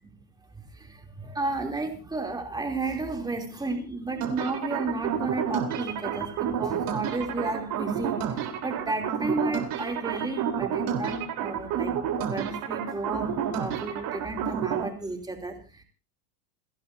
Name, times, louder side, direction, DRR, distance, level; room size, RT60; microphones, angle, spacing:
voice 1, 0.6-15.8, right 2 dB, 10° right, 3 dB, 3.1 m, -33 dB
sound 1, 4.2-14.9, right 8 dB, 45° right, 3.8 m, -30 dB
29.0 x 12.0 x 2.7 m, 0.31 s
supercardioid pair, 145°, 49 cm